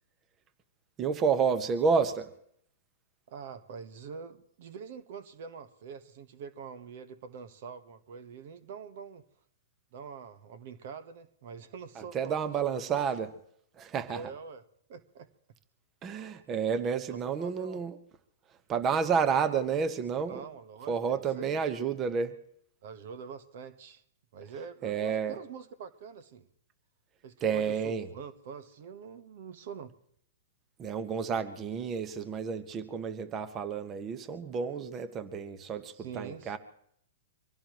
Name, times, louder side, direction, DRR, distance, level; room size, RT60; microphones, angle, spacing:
voice 1, 1.0-2.3 11.9-13.3 13.7-14.2 16.0-18.0 18.7-20.5 20.9-22.3 24.8-25.4 27.4-28.1 30.8-36.6, right 6 dB, 25° right, 11 dB, 1.2 m, -30 dB
voice 2, 3.3-9.2 9.9-13.1 14.1-14.6 14.9-15.3 17.1-17.8 20.3-21.6 22.8-24.0 24.3-26.5 27.2-29.9 35.9-36.6, right 6 dB, 60° right, 12 dB, 1.3 m, -45 dB
25.0 x 16.5 x 3.1 m, 0.67 s
hypercardioid pair, 125°, 0 cm